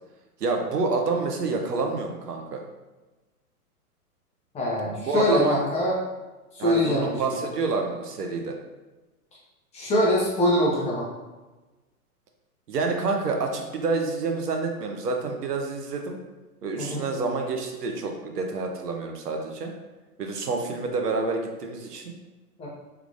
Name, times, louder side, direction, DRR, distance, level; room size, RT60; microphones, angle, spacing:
voice 1, 0.4-2.6 5.0-5.6 6.6-8.5 12.7-16.2 16.6-19.7 20.2-22.0, right 4 dB, 85° right, 3 dB, 0.8 m, -28 dB
voice 2, 4.5-6.0 6.5-7.4 9.7-11.1 16.8-17.0 22.6-22.7, left 1 dB, 15° left, -5 dB, 0.7 m, -23 dB
3.6 x 3.3 x 2.4 m, 1.2 s
hypercardioid pair, 120°, 46 cm